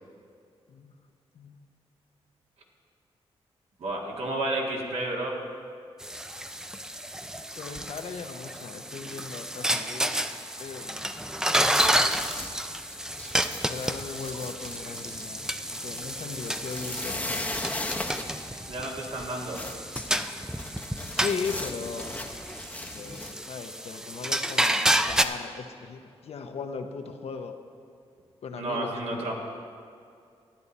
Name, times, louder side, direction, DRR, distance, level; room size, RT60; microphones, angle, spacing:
voice 1, 1.3-1.6 7.5-11.2 11.9-12.0 13.7-15.4 15.8-18.0 21.1-22.3 22.9-27.5 28.4-29.3, left 5 dB, 70° left, 5 dB, 0.8 m, -38 dB
voice 2, 3.8-5.4 18.7-19.6 28.6-29.3, right 1 dB, 70° right, -2 dB, 1.9 m, -31 dB
sound 1, 6.0-25.2, right 1 dB, 5° right, 0.4 m, -30 dB
sound 2, 11.6-23.3, left 2 dB, 15° left, 0.8 m, -38 dB
13.0 x 9.6 x 4.2 m, 2.4 s
cardioid pair, 80°, 11 cm